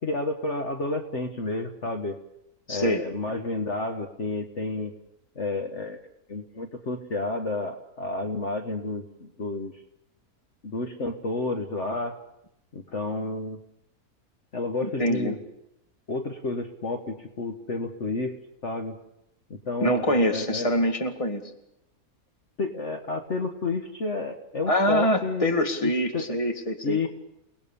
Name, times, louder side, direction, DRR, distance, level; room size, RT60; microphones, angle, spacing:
voice 1, 0.0-2.2 2.7-4.9 5.3-6.0 6.3-9.8 10.6-12.1 12.7-13.6 14.5-15.4 16.1-18.3 18.6-19.0 19.5-20.7 22.6-25.5 25.8-26.4 26.8-27.1, left 3 dB, 50° left, 5 dB, 1.7 m, -30 dB
voice 2, 2.7-3.1 14.8-15.4 19.8-21.5 24.7-27.1, equal, 20° left, 5 dB, 2.2 m, -25 dB
29.5 x 19.0 x 7.0 m, 0.85 s
omnidirectional pair, 1.6 m